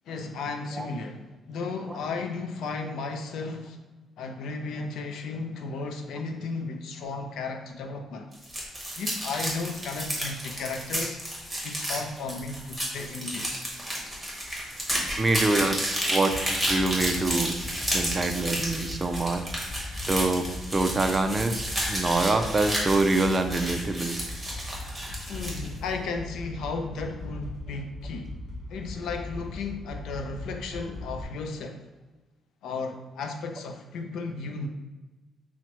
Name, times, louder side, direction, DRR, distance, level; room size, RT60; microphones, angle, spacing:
voice 1, 0.1-3.8 4.2-8.3 9.0-11.2 11.6-13.8 25.3-28.3 28.7-31.8 32.6-34.7, left 4 dB, 80° left, 5 dB, 0.5 m, -34 dB
sound 1, 8.3-25.7, equal, 5° right, 1.3 m, -31 dB
voice 2, 15.2-17.5 17.9-19.4 20.1-20.5 20.7-24.2, right 2 dB, 25° right, 6 dB, 0.3 m, -25 dB
sound 2, 16.3-31.2, left 2 dB, 45° left, 1.2 m, -39 dB
5.8 x 2.1 x 2.9 m, 1.1 s
cardioid pair, 90°, 0 cm